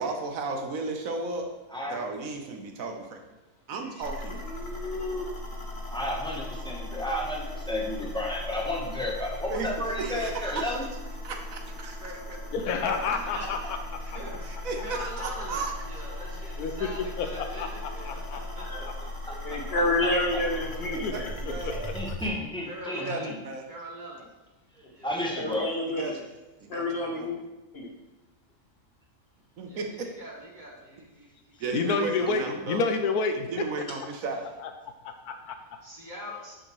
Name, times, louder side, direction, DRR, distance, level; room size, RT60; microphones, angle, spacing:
voice 1, 0.0-1.5 1.9-3.2 3.7-4.4 9.5-9.7 10.0-10.8 11.2-12.0 14.6-15.7 20.9-21.2 21.5-21.8 23.1-23.2 23.4-23.6 26.0-26.2 26.6-27.4 29.6-29.9 31.6-32.8 33.5-34.4, right 3 dB, 70° right, 3 dB, 1.1 m, -34 dB
sound 1, 4.0-22.3, left 1 dB, 35° left, 1.4 m, -38 dB
voice 2, 4.3-5.3 18.7-18.8 19.4-21.9 25.4-26.2 26.7-27.4 27.7-27.9, left 1 dB, 50° left, 0 dB, 0.9 m, -30 dB
voice 3, 5.9-10.8 18.8-19.1 19.5-20.1 21.9-23.3 25.0-25.7, left 1 dB, 5° left, -3 dB, 0.7 m, -32 dB
voice 4, 12.0-12.4 12.8-18.7 22.7-23.3 23.7-24.3 24.7-25.1 29.7-31.5 31.8-31.9 35.8-36.6, equal, 35° right, -2 dB, 1.1 m, -43 dB
voice 5, 12.5-13.8 14.1-14.2 16.6-16.9 17.2-18.4 20.8-21.7 31.7-33.5 34.6-34.7 35.0-35.5, left 4 dB, 85° left, 6 dB, 1.2 m, -30 dB
6.5 x 6.1 x 3.0 m, 1.1 s
omnidirectional pair, 1.6 m